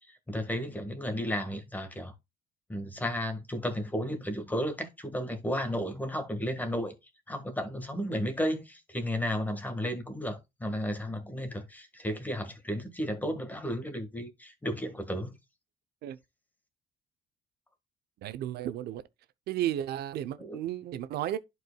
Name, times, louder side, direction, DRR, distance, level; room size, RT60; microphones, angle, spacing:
voice 1, 0.3-2.1 2.7-6.9 7.3-15.4 20.4-20.6, equal, 10° left, 1.6 m, -33 dB
voice 2, 18.2-19.0 19.5-21.4, right 12 dB, 70° right, 0.7 m, -33 dB
11.0 x 4.7 x 2.3 m
cardioid pair, 110°, 17 cm